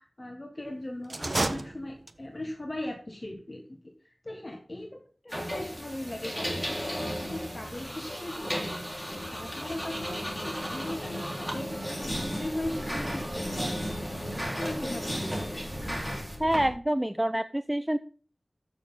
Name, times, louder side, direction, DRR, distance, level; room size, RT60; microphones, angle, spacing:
voice 1, 0.0-14.2 14.6-15.7, left 1 dB, 35° left, 3 dB, 1.4 m, -39 dB
sound 1, 1.0-2.4, right 2 dB, 50° right, 0.7 m, -31 dB
sound 2, 5.3-16.7, equal, 10° left, 3.7 m, -34 dB
Telephone, 7.0-7.1 7.8-8.0 8.6-8.8 9.3-9.5 10.0-10.2 10.6-10.8 11.2-11.4 11.7-11.9 12.2-12.3 12.7-12.9 13.2-13.4 13.7-13.9, right 2 dB, 75° right, 2.2 m, -50 dB
voice 2, 16.4-18.0, right 1 dB, 15° right, 11 dB, 0.4 m, -27 dB
13.5 x 6.4 x 3.7 m, 0.39 s
wide cardioid pair, 55°, 0 cm